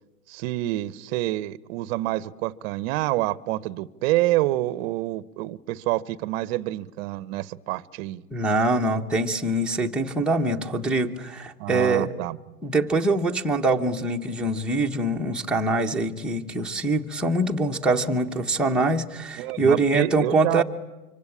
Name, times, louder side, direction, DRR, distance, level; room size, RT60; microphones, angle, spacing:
voice 1, 0.3-8.2 11.6-12.4 19.4-20.6, right 16 dB, 40° right, 0.9 m, -27 dB
voice 2, 8.3-12.1 12.6-20.6, right 2 dB, ahead, 1.2 m, -24 dB
25.0 x 25.0 x 8.8 m
hypercardioid pair, 130°, 46 cm